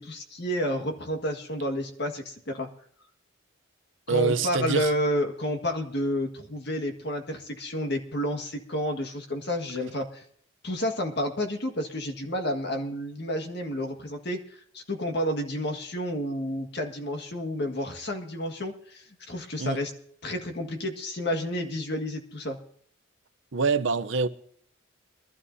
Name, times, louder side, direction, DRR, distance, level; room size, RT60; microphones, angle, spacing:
voice 1, 0.0-2.7 4.1-10.2 10.6-14.4 14.7-19.9 20.2-22.6, equal, 55° left, 1.7 m, -30 dB
voice 2, 4.1-4.9 19.6-19.8 23.5-24.3, right 4 dB, 70° right, 0.7 m, -25 dB
22.5 x 12.5 x 2.7 m
head